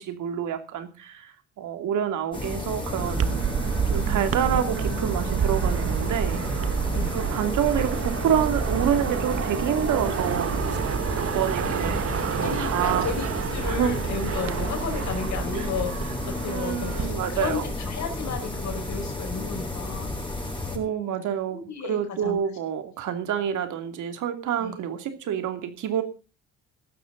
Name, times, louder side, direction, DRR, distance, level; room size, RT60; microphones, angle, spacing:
voice 1, 0.0-3.4 3.9-6.9 7.1-10.5 11.2-12.1 12.4-13.1 13.7-13.9 15.5-15.7 16.4-17.6 20.7-26.0, right 9 dB, 80° right, 6 dB, 2.8 m, -28 dB
sound 1, 2.3-20.8, left 2 dB, 15° left, 7.9 m, -32 dB
sound 2, 3.0-17.1, right 7 dB, 50° right, 1.3 m, -28 dB
voice 2, 6.9-7.3 11.7-11.9 12.4-21.2 21.5-22.4 24.6-24.8, left 6 dB, 65° left, 5 dB, 5.5 m, -34 dB
17.5 x 13.0 x 4.0 m, 0.34 s
cardioid pair, 90°, 30 cm